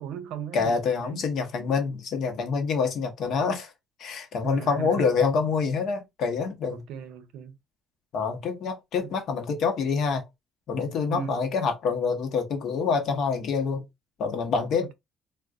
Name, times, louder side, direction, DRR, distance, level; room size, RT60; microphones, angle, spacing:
voice 1, 0.0-1.3 4.4-5.1 6.7-7.6 9.0-9.1 11.1-11.4, right 7 dB, 90° right, 0.6 m, -37 dB
voice 2, 0.5-3.7 4.0-6.8 8.1-10.2 10.7-13.8 14.2-14.9, left 5 dB, 65° left, 0.9 m, -26 dB
2.4 x 2.2 x 3.6 m
cardioid pair, 105°, 0 cm